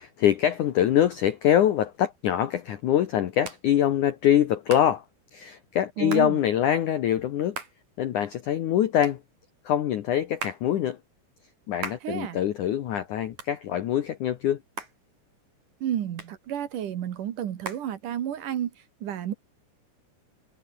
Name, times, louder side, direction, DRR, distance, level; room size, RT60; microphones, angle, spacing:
voice 1, 0.0-5.0 5.3-7.6 8.0-9.2 9.7-11.0 11.7-14.6, left 10 dB, 80° left, 1.8 m, -24 dB
Hands, 1.9-18.6, right 4 dB, 40° right, 6.1 m, -44 dB
voice 2, 6.0-6.4 12.0-12.4 15.8-18.7 19.0-19.3, right 10 dB, 60° right, 2.5 m, -31 dB
omnidirectional pair, 5.4 m